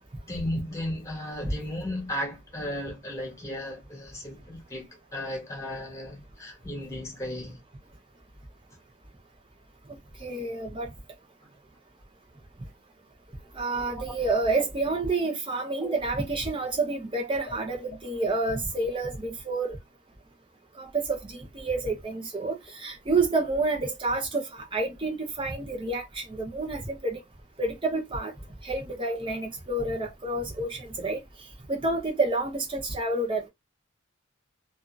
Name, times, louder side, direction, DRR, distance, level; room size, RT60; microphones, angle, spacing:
voice 1, 0.2-7.6 13.9-14.2 15.8-16.0, left 1 dB, 15° left, 1.4 m, -35 dB
voice 2, 10.2-10.9 13.5-19.8 20.8-27.2 27.6-28.3 28.6-31.2 31.7-33.5, right 3 dB, 25° right, 0.9 m, -29 dB
2.7 x 2.5 x 2.4 m
head